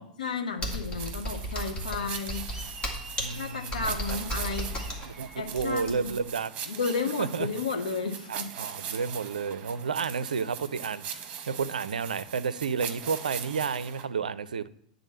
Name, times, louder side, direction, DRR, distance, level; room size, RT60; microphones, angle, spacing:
voice 1, 0.0-2.4 3.3-4.7 5.4-6.1 6.7-8.5, left 4 dB, 70° left, 4 dB, 1.2 m, -32 dB
Computer keyboard, 0.6-6.2, equal, 25° left, 2.2 m, -35 dB
sound 1, 0.6-14.0, right 8 dB, 35° right, 1.1 m, -41 dB
sound 2, 2.1-4.0 4.3-5.5 6.8-6.9, right 3 dB, 10° right, 2.0 m, -47 dB
voice 2, 3.2-4.2 5.1-6.5 7.2-7.5 8.3-14.7, right 5 dB, 75° right, 16 dB, 0.4 m, -31 dB
9.9 x 3.8 x 6.9 m, 0.70 s
figure-of-eight pair, 90°, 4 cm